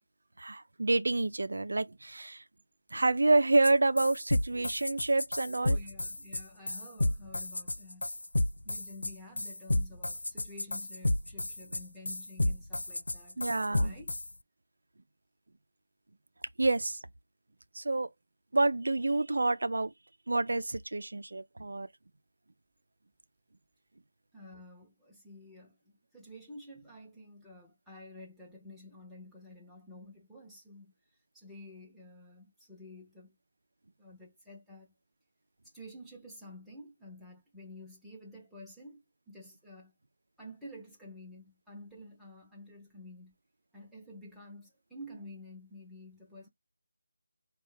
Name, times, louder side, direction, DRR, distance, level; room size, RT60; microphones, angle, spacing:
voice 1, 0.4-2.4 2.9-5.8 13.4-13.9 16.6-17.0 17.7-18.1 18.5-19.9 20.3-21.9, right 2 dB, 70° right, 0.6 m, -28 dB
sound 1, 3.6-3.7 4.0-14.3, left 1 dB, 85° left, 0.4 m, -31 dB
voice 2, 5.6-8.1 8.6-13.4 13.8-14.1 24.3-30.9 31.3-33.4 34.0-34.9 35.7-39.9 40.4-43.4 43.7-46.5, left 1 dB, ahead, 0.9 m, -50 dB
4.9 x 2.4 x 4.0 m
figure-of-eight pair, 165°, 0 cm